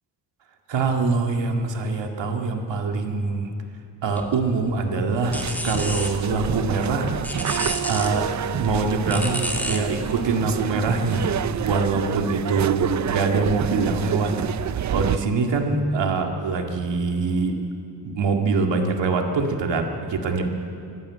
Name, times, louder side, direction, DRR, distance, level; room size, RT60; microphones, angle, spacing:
voice 1, 0.7-3.5 4.0-5.4 5.6-7.1 7.9-8.3 8.6-14.3 14.9-17.6 18.0-20.5, right 4 dB, 75° right, 3 dB, 2.2 m, -24 dB
sound 1, 4.2-9.8, equal, 5° left, 2.3 m, -32 dB
sound 2, 5.2-15.2, right 9 dB, 40° right, 0.5 m, -28 dB
26.5 x 12.0 x 8.6 m, 2.4 s
cardioid pair, 100°, 44 cm